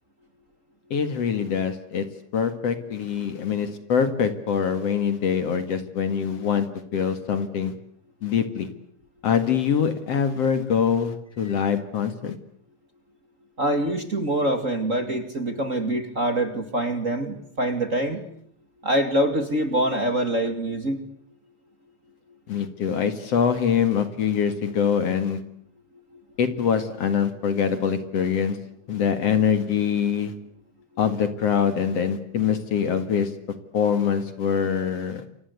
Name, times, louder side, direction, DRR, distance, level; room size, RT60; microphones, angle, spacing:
voice 1, 0.9-2.0 2.3-6.7 6.9-7.7 8.2-8.7 9.2-12.4 22.5-25.4 26.4-28.6 28.9-30.3 31.0-33.3 33.7-35.2, left 7 dB, 55° left, 10 dB, 2.9 m, -24 dB
voice 2, 13.6-18.2 18.8-21.0 26.1-26.2, right 1 dB, 25° right, 8 dB, 2.4 m, -25 dB
29.0 x 24.5 x 8.3 m, 0.66 s
omnidirectional pair, 3.4 m